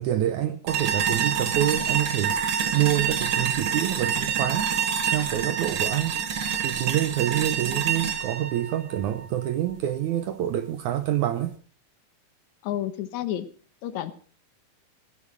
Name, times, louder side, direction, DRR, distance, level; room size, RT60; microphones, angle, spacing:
voice 1, 0.0-2.4 2.7-4.7 5.1-6.2 6.6-11.5, right 12 dB, 75° right, 1.8 m, -27 dB
sound 1, 0.7-9.7, right 7 dB, 55° right, 1.4 m, -27 dB
voice 2, 12.6-13.5 13.8-14.1, left 12 dB, 65° left, 2.0 m, -30 dB
15.0 x 10.5 x 6.0 m
omnidirectional pair, 4.2 m